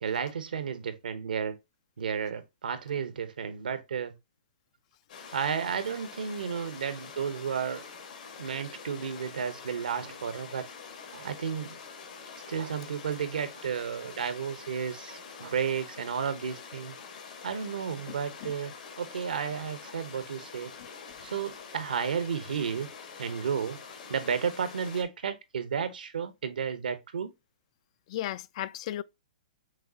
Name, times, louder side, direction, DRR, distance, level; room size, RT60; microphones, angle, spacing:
voice 1, 0.0-1.5 2.0-4.1 5.3-7.8 8.4-10.7 11.1-11.8 12.5-17.0 17.4-20.7 21.2-22.9 23.2-23.8 24.1-27.3, right 7 dB, 80° right, 0.8 m, -32 dB
sound 1, 5.1-25.0, left 6 dB, 65° left, 1.5 m, -46 dB
voice 2, 18.1-18.5 20.8-20.9 28.1-29.0, left 13 dB, 45° left, 0.3 m, -36 dB
6.3 x 2.4 x 2.7 m
hypercardioid pair, 135°, 5 cm